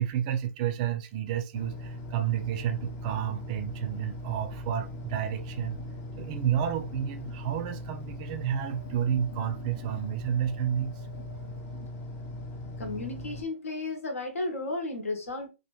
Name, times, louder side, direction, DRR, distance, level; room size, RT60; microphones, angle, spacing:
voice 1, 0.0-5.8 6.2-10.9, right 10 dB, 30° right, 0.4 m, -30 dB
sound 1, 1.5-13.4, left 1 dB, 25° left, 0.5 m, -39 dB
voice 2, 12.8-15.5, left 2 dB, 75° left, 1.2 m, -33 dB
2.9 x 2.5 x 3.1 m
hypercardioid pair, 145°, 8 cm